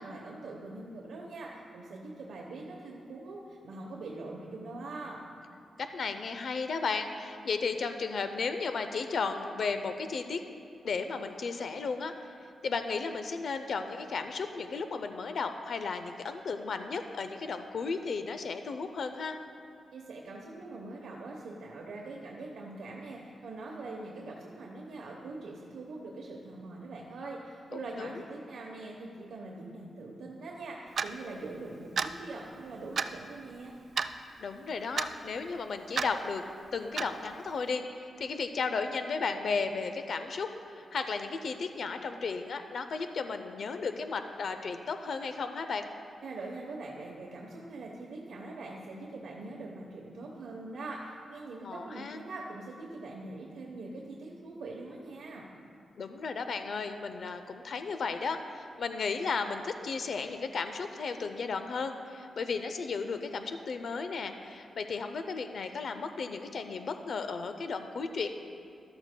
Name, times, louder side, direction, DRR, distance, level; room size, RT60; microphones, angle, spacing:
voice 1, 0.0-5.2 19.9-33.7 46.2-55.5, right 2 dB, 90° right, -2 dB, 0.9 m, -43 dB
voice 2, 5.8-10.4 10.8-12.1 12.6-19.4 27.7-28.2 34.4-36.4 36.7-45.9 51.6-52.2 56.0-68.3, left 4 dB, 60° left, 8 dB, 0.5 m, -34 dB
Clock, 31.0-31.1 32.0-32.1 33.0-33.1 34.0-34.1 35.0-35.1 36.0-36.1 37.0-37.1, right 6 dB, 50° right, 0.3 m, -30 dB
13.5 x 12.0 x 2.2 m, 2.5 s
wide cardioid pair, 135°, 0 cm